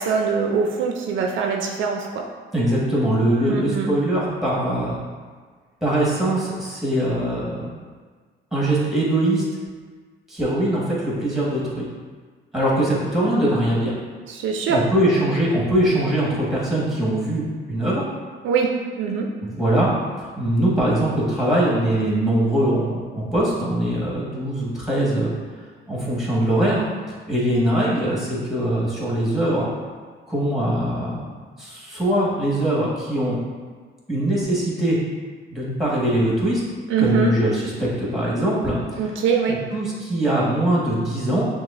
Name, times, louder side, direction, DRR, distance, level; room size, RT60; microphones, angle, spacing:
voice 1, 0.0-2.2 3.4-3.9 14.3-14.8 18.4-18.7 19.0-19.3 36.9-37.3 39.0-39.6, right 6 dB, 75° right, 1 dB, 0.4 m, -22 dB
voice 2, 2.5-4.9 5.8-7.7 8.5-9.4 10.3-11.9 12.5-13.9 14.7-18.0 19.4-19.9 20.4-25.3 25.9-26.8 27.3-29.7 30.3-31.2 31.6-33.4 34.1-35.0 35.5-36.6 37.0-38.8 39.5-41.5, right 1 dB, ahead, -6 dB, 1.4 m, -22 dB
6.1 x 2.1 x 2.5 m, 1.5 s
cardioid pair, 90°, 20 cm